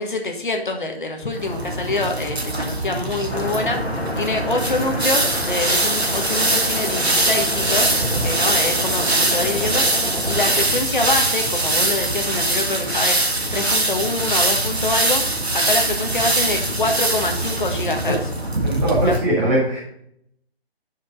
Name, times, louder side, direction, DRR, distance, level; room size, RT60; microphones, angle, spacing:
voice 1, 0.0-7.9 8.2-10.0 10.3-15.2 15.5-18.2 19.0-19.2, left 2 dB, 50° left, 4 dB, 1.4 m, -25 dB
sound 1, 1.4-19.2, right 2 dB, 75° right, 1.8 m, -22 dB
sound 2, 3.3-10.6, left 1 dB, 85° left, 2.0 m, -29 dB
voice 2, 18.6-19.8, right 1 dB, 15° right, -4 dB, 1.7 m, -20 dB
9.9 x 5.1 x 3.6 m, 0.72 s
figure-of-eight pair, 155°, 32 cm